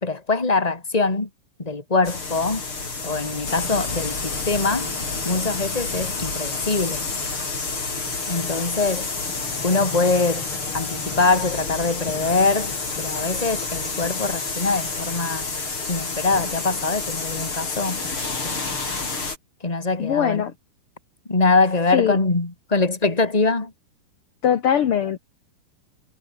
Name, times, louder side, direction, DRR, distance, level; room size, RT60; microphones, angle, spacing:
voice 1, 0.0-1.3 1.6-2.7 3.0-4.9 5.2-7.1 8.3-9.1 9.6-15.5 15.9-18.0 18.4-18.8 19.6-20.4 21.3-23.7, left 3 dB, 10° left, 2.7 m, -23 dB
sound 1, 2.0-19.4, left 4 dB, 35° left, 5.7 m, -29 dB
voice 2, 20.0-20.5 21.9-22.2 24.4-25.2, left 9 dB, 55° left, 1.7 m, -21 dB
omnidirectional pair, 4.2 m